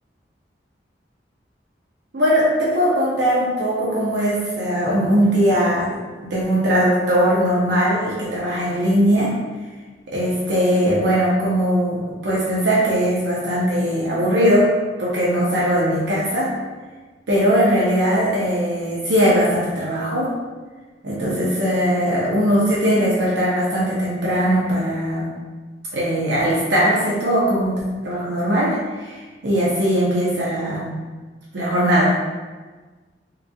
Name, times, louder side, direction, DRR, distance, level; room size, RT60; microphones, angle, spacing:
voice 1, 2.1-5.9 6.2-9.3 10.1-14.7 15.0-16.5 17.3-20.3 21.0-25.3 25.9-29.1 29.4-30.9 31.5-32.2, equal, 80° right, -6 dB, 0.7 m, -20 dB
3.8 x 3.0 x 2.3 m, 1.3 s
head